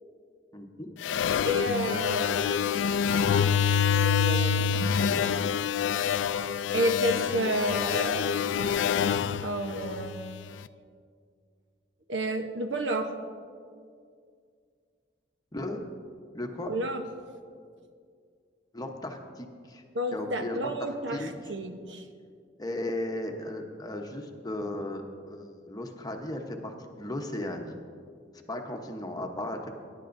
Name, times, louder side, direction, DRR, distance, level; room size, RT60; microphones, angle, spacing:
voice 1, 0.5-0.9 15.5-15.8 16.3-16.7 18.7-19.8 20.1-21.5 22.6-27.8 28.5-29.7, left 1 dB, 20° left, 4 dB, 0.9 m, -36 dB
sound 1, 1.0-10.5, left 7 dB, 80° left, 0.3 m, -26 dB
voice 2, 1.5-2.5 3.4-4.9 6.7-8.4 9.4-10.2 12.1-13.1 16.7-17.0 19.9-22.0, right 1 dB, 85° right, 6 dB, 0.9 m, -31 dB
21.5 x 10.5 x 2.6 m, 2.2 s
head